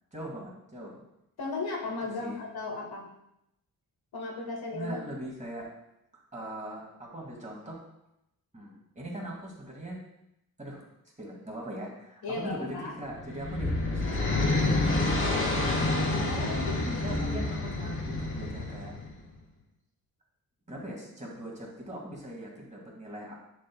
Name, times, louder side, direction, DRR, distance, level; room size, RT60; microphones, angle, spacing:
voice 1, 0.1-1.1 2.0-2.4 4.7-5.7 6.3-7.8 8.5-10.0 10.6-10.8 11.2-14.8 15.3-15.8 16.4-18.9 20.7-23.3, right 1 dB, 20° right, -2 dB, 1.8 m, -40 dB
voice 2, 1.4-3.1 4.1-5.0 12.2-12.9 16.2-17.2, left 3 dB, 75° left, -1 dB, 1.4 m, -36 dB
sound 1, 13.1-19.2, left 2 dB, 35° left, 1.1 m, -28 dB
7.4 x 6.4 x 2.2 m, 0.84 s
wide cardioid pair, 115°, 37 cm